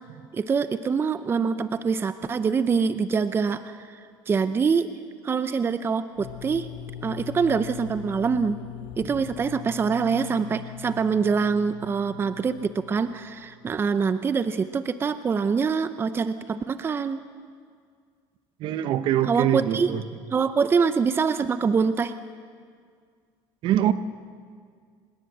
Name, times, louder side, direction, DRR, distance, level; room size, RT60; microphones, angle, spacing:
voice 1, 0.3-4.0 4.3-4.9 5.2-6.7 7.0-8.6 9.0-17.2 19.3-19.9 20.3-22.1, right 5 dB, 25° right, 12 dB, 0.7 m, -25 dB
sound 1, 6.2-13.9, left 14 dB, 60° left, 0.8 m, -41 dB
voice 2, 18.6-20.0 23.6-23.9, right 11 dB, 55° right, 12 dB, 1.1 m, -24 dB
26.0 x 20.5 x 8.0 m, 2.1 s
cardioid pair, 125°, 10 cm